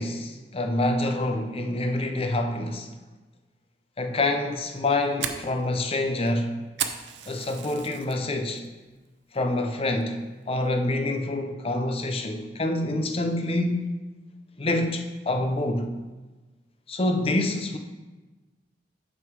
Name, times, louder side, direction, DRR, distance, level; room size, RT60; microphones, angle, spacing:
voice 1, 0.0-2.9 4.0-6.6 7.3-8.6 9.3-10.2 10.5-13.9 14.6-15.9 16.9-17.8, left 2 dB, 35° left, 5 dB, 0.7 m, -26 dB
Fire, 4.6-8.2 8.6-9.0 9.3-9.5 10.0-10.3, right 8 dB, 90° right, 0.6 m, -34 dB
6.4 x 5.4 x 4.7 m, 1.2 s
head